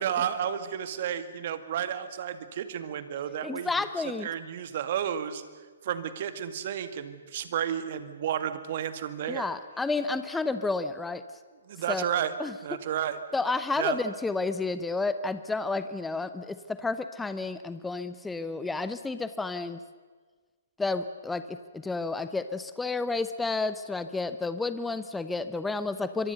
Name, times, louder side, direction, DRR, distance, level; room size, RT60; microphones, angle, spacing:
voice 1, 0.0-3.7 4.2-5.4 5.8-9.5 11.6-12.3 12.6-13.2 13.8-14.0, right 9 dB, 45° right, 11 dB, 1.9 m, -32 dB
voice 2, 3.4-4.3 9.3-11.2 11.9-12.8 13.3-19.8 20.8-26.3, left 3 dB, 5° left, 11 dB, 0.8 m, -31 dB
25.0 x 23.0 x 6.9 m, 1.5 s
figure-of-eight pair, 130°, 0 cm